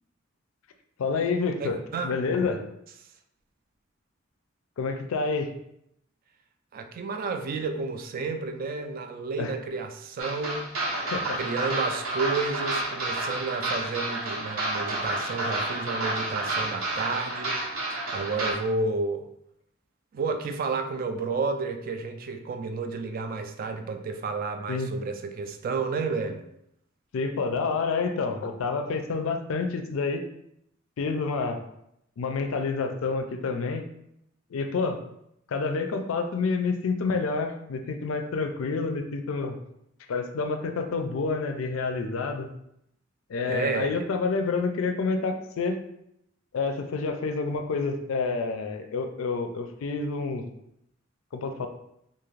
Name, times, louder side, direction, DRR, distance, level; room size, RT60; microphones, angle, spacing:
voice 1, 1.0-1.8 2.0-2.6 4.8-5.5 9.4-9.5 10.9-11.4 24.7-24.9 27.1-30.2 31.0-31.6 32.2-33.9 34.5-35.0 35.5-39.6 40.1-42.5 43.3-45.8 46.5-50.5 51.3-51.7, left 4 dB, 80° left, 6 dB, 0.4 m, -28 dB
voice 2, 1.6-2.1 6.7-10.7 11.3-19.3 20.1-26.4 43.5-44.0, right 4 dB, 45° right, 6 dB, 0.3 m, -31 dB
sound 1, 10.2-18.5, right 2 dB, 90° right, 0.7 m, -30 dB
2.6 x 2.4 x 3.1 m, 0.76 s
head